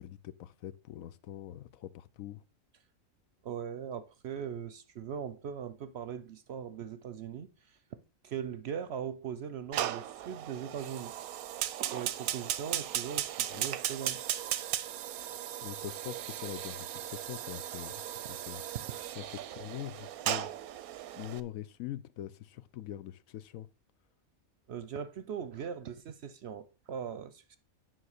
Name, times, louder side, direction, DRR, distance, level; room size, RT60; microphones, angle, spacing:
voice 1, 0.0-2.4 13.5-13.6 15.6-18.6 19.2-20.5 21.1-23.7, left 12 dB, 75° left, 1.0 m, -43 dB
voice 2, 3.4-8.0 8.2-11.1 11.9-14.2 24.7-27.6, right 8 dB, 60° right, 0.8 m, -40 dB
Fire, 9.7-21.4, right 12 dB, 85° right, 1.1 m, -37 dB
9.5 x 3.8 x 6.5 m
omnidirectional pair, 1.5 m